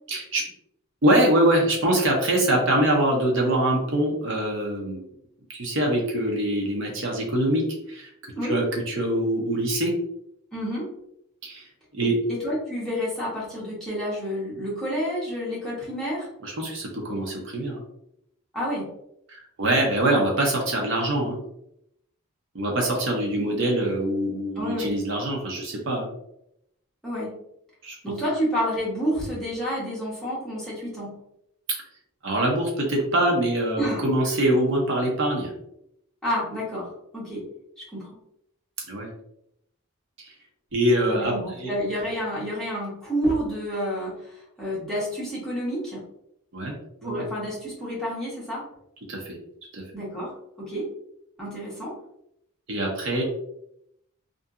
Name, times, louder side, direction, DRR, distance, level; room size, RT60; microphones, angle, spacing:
voice 1, 0.1-0.4 1.0-5.0 5.5-8.1 8.4-9.9 11.4-11.6 11.9-12.2 16.4-17.8 19.3-21.4 22.5-26.1 27.8-27.9 32.2-35.5 38.9-39.1 40.2-40.3 40.7-41.7 46.5-46.7 47.0-47.2 49.1-49.4 49.7-49.8 52.7-53.2, right 1 dB, 55° right, 0 dB, 0.6 m, -24 dB
voice 2, 10.5-11.0 12.0-16.3 18.5-18.9 24.6-24.9 27.0-27.4 28.0-31.2 33.8-34.0 36.2-37.5 37.8-38.2 41.1-46.1 47.0-48.7 49.9-50.9 51.4-52.0, equal, ahead, -8 dB, 0.9 m, -29 dB
2.6 x 2.6 x 2.4 m, 0.77 s
head